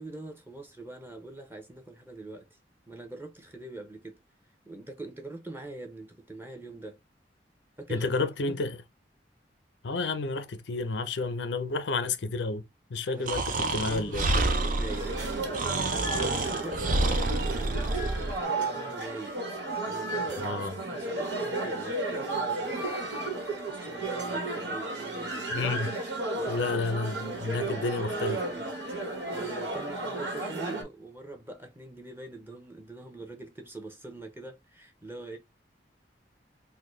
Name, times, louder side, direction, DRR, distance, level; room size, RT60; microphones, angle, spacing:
voice 1, 0.0-2.6 2.9-4.2 4.6-7.0 7.8-8.6 13.1-16.8 17.4-19.4 19.8-25.8 26.4-28.6 29.3-35.4, right 2 dB, 15° right, 0.8 m, -44 dB
voice 2, 7.9-8.8 9.8-12.6 12.9-14.3 20.4-20.8 25.5-25.9 26.5-28.4, left 3 dB, 85° left, 0.6 m, -30 dB
Breathing, 13.3-18.4, right 2 dB, 50° right, 0.6 m, -28 dB
sound 1, 14.9-30.8, right 2 dB, 80° right, 1.3 m, -33 dB
3.8 x 2.2 x 3.1 m
head